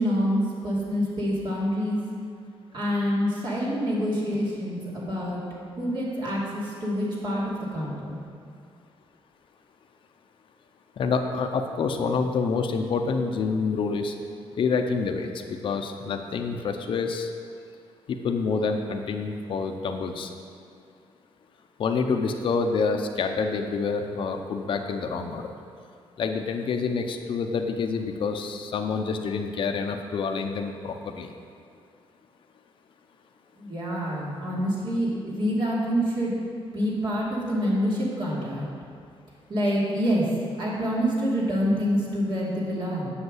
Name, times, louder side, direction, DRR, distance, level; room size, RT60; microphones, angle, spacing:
voice 1, 0.0-2.0 2.7-5.4 5.8-8.2 33.6-36.4 36.7-38.6 39.5-40.3 40.6-43.1, equal, 55° right, -6 dB, 2.8 m, -26 dB
voice 2, 11.0-14.1 14.6-17.3 18.1-20.3 21.8-25.5 26.2-31.3, left 5 dB, 60° left, 4 dB, 0.7 m, -27 dB
8.0 x 5.8 x 8.0 m, 2.3 s
cardioid pair, 110°, 10 cm